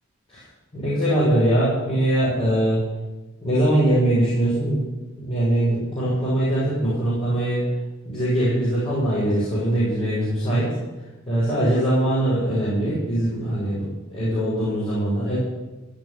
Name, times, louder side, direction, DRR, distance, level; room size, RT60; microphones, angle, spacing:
voice 1, 0.7-2.8 3.4-4.9 5.2-7.6 8.0-10.7 11.3-15.4, right 1 dB, 30° left, -10 dB, 6.5 m, -22 dB
17.0 x 6.1 x 9.6 m, 1.1 s
head